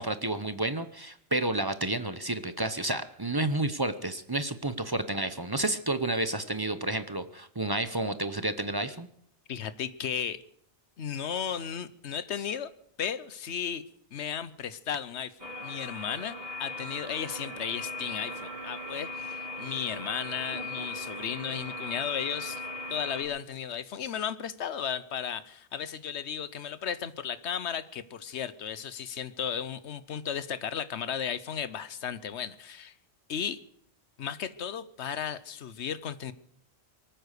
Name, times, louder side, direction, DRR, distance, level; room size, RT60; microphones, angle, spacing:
voice 1, 0.0-9.1, right 2 dB, 25° right, 11 dB, 0.7 m, -30 dB
voice 2, 9.5-10.4 11.0-12.7 13.0-13.8 14.1-22.6 22.9-32.9 33.3-33.6 34.2-36.3, left 8 dB, 75° left, 15 dB, 1.2 m, -35 dB
sound 1, 15.4-23.2, left 2 dB, 60° right, 2.8 m, -38 dB
23.5 x 9.2 x 6.7 m, 0.69 s
omnidirectional pair, 1.2 m